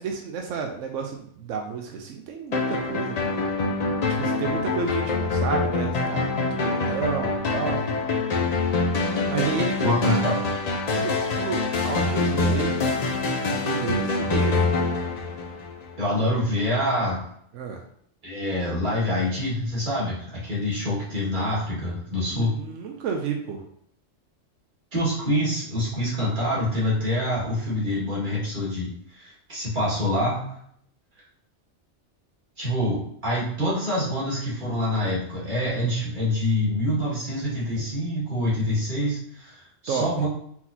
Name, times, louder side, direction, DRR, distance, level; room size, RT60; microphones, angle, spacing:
voice 1, 0.0-3.1 4.2-7.8 9.3-10.3 11.0-11.6 11.8-12.7 13.5-14.5 17.5-17.8 22.3-23.6 39.9-40.1, right 6 dB, 90° right, 2 dB, 0.9 m, -31 dB
sound 1, 2.5-16.1, left 3 dB, 50° left, 0.5 m, -25 dB
voice 2, 9.8-10.3 14.2-14.3 16.0-17.2 18.2-22.5 24.9-30.5 32.6-40.3, left 1 dB, 40° right, -7 dB, 2.1 m, -26 dB
4.4 x 3.9 x 2.7 m, 0.67 s
omnidirectional pair, 1.3 m